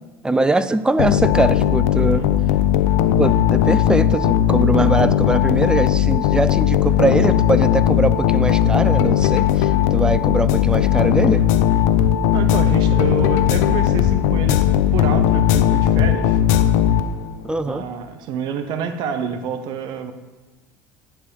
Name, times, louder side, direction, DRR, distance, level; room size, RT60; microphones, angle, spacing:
voice 1, 0.2-2.2 3.2-11.4 17.4-17.8, right 2 dB, 10° right, 13 dB, 0.4 m, -21 dB
sound 1, 1.0-17.4, left 10 dB, 80° left, 0.5 m, -17 dB
voice 2, 1.9-2.3 12.3-16.4 17.6-20.1, right 7 dB, 65° right, 9 dB, 0.7 m, -28 dB
9.6 x 3.4 x 6.3 m, 1.2 s
supercardioid pair, 80°, 8 cm